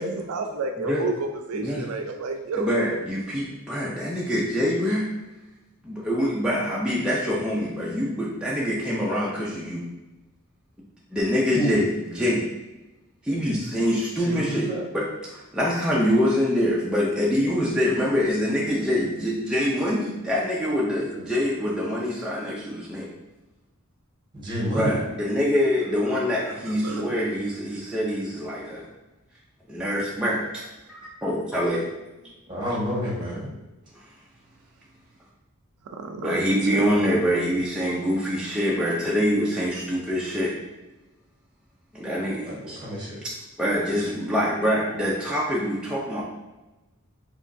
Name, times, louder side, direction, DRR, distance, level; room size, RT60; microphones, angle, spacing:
voice 1, 0.0-2.7 26.5-27.1 35.9-36.4 36.7-36.9, right 3 dB, 75° right, 4 dB, 0.4 m, -31 dB
voice 2, 1.5-1.9 2.5-5.1 5.8-9.9 11.1-12.5 13.2-14.7 14.9-15.0 15.3-23.1 24.7-28.9 29.7-30.6 30.9-31.9 33.9-34.0 36.2-40.6 41.9-42.8 43.2-46.2, equal, 5° right, -6 dB, 0.5 m, -25 dB
voice 3, 14.2-14.8 24.3-25.0 32.5-33.5 36.7-37.2 42.4-43.2, equal, 20° right, -5 dB, 1.4 m, -29 dB
4.8 x 3.0 x 2.6 m, 1.1 s
head